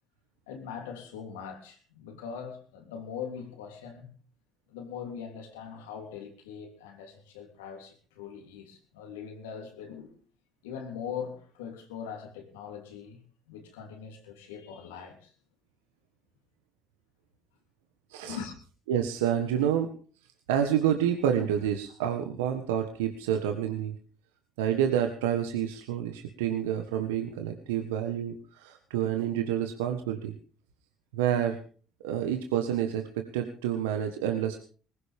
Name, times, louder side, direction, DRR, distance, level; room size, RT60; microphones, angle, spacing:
voice 1, 0.5-4.1 4.7-10.1 10.6-13.2 13.5-15.3 18.2-18.6, left 7 dB, 90° left, 3.2 m, -41 dB
voice 2, 18.9-19.9 20.5-23.9 24.6-30.3 31.1-31.6 32.0-34.6, right 9 dB, 90° right, 1.4 m, -28 dB
20.0 x 16.0 x 3.6 m
hypercardioid pair, 65°, 0 cm